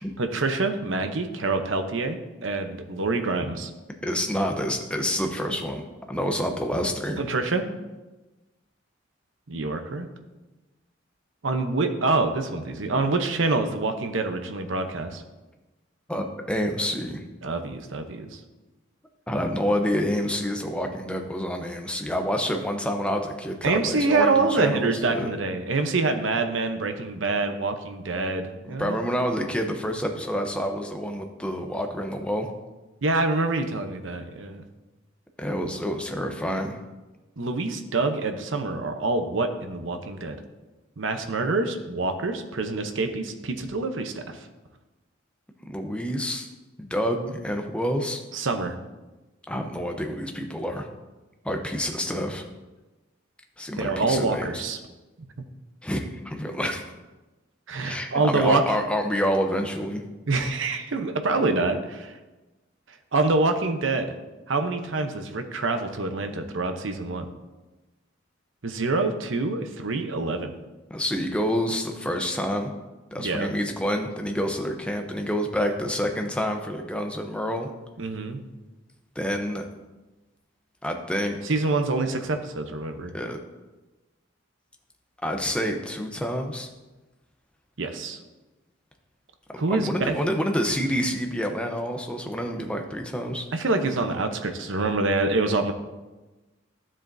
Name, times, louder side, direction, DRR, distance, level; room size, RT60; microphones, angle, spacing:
voice 1, 0.2-3.7 7.2-7.6 9.5-10.1 11.4-15.2 17.4-18.4 23.6-29.0 33.0-34.6 37.4-40.4 41.0-44.4 48.3-48.7 53.8-54.8 57.7-58.6 60.3-62.1 63.1-64.1 64.5-67.3 68.6-70.5 73.2-73.5 78.0-78.4 81.4-83.1 87.8-88.2 89.6-90.1 93.5-95.7, right 3 dB, 75° right, 7 dB, 0.8 m, -26 dB
voice 2, 4.0-7.2 16.1-17.2 19.3-25.3 28.6-32.5 35.4-36.8 45.7-46.5 46.8-48.2 49.5-50.9 51.4-52.4 53.6-54.6 55.8-56.8 57.8-60.0 70.9-72.7 73.1-77.7 79.2-79.6 80.8-81.4 83.1-83.4 85.2-86.7 89.7-93.5, equal, 5° left, 3 dB, 0.7 m, -28 dB
12.0 x 7.3 x 2.7 m, 1.1 s
head